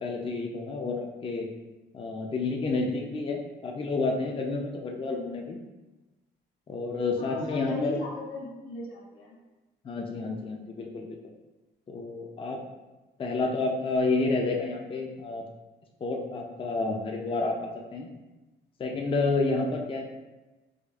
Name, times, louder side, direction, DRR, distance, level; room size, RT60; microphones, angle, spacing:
voice 1, 0.0-1.5 1.9-5.6 6.7-8.0 9.8-11.1 11.9-12.6 13.2-15.4 16.0-18.1 18.8-20.0, left 3 dB, 25° left, 1 dB, 0.4 m, -30 dB
voice 2, 7.2-9.3, left 1 dB, 85° left, -4 dB, 1.0 m, -37 dB
5.0 x 2.3 x 2.4 m, 1.1 s
cardioid pair, 90°, 20 cm